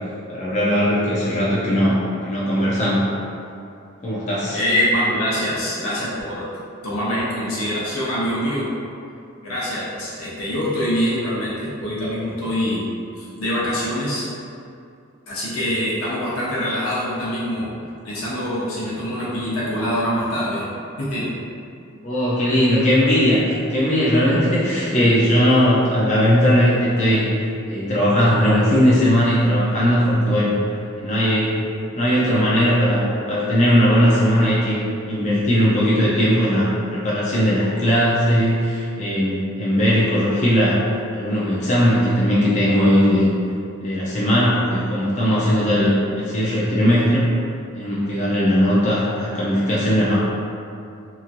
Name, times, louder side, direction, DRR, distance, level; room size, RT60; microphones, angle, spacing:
voice 1, 0.3-3.1 4.0-4.6 22.0-30.5 31.0-31.6 31.9-34.8 35.1-40.8 41.1-43.3 43.8-47.3 47.7-50.2, equal, 35° left, -8 dB, 0.4 m, -18 dB
voice 2, 4.5-8.7 9.4-12.8 13.1-14.3 15.3-17.7 18.0-21.3, equal, 75° left, -8 dB, 0.8 m, -24 dB
2.9 x 2.6 x 2.5 m, 2.5 s
head